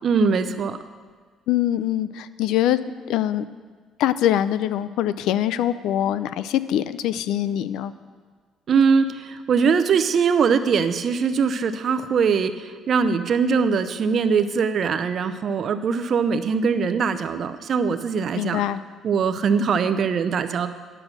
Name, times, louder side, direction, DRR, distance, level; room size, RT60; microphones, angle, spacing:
voice 1, 0.0-0.8 8.7-18.6 19.0-20.7, right 5 dB, 50° right, 10 dB, 0.6 m, -21 dB
voice 2, 1.5-2.8 3.1-3.5 4.0-7.9 18.3-18.8, left 12 dB, 80° left, 15 dB, 0.4 m, -23 dB
9.8 x 6.4 x 6.1 m, 1.5 s
cardioid pair, 115°, 0 cm